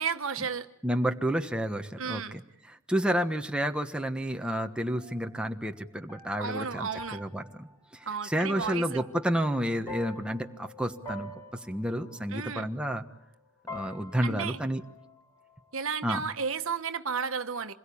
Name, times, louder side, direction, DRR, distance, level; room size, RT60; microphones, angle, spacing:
voice 1, 0.0-0.7 2.0-2.3 6.4-7.2 8.1-9.0 12.3-12.7 14.2-14.6 15.7-17.7, right 6 dB, 70° right, 8 dB, 1.4 m, -33 dB
voice 2, 0.8-2.4 2.7-7.7 7.9-11.3 11.7-13.0 13.7-14.8 16.0-16.2, equal, 5° right, 4 dB, 1.3 m, -30 dB
sound 1, 4.5-13.4 13.7-15.7, left 2 dB, 15° left, 4.5 m, -46 dB
27.5 x 21.5 x 8.7 m, 0.76 s
head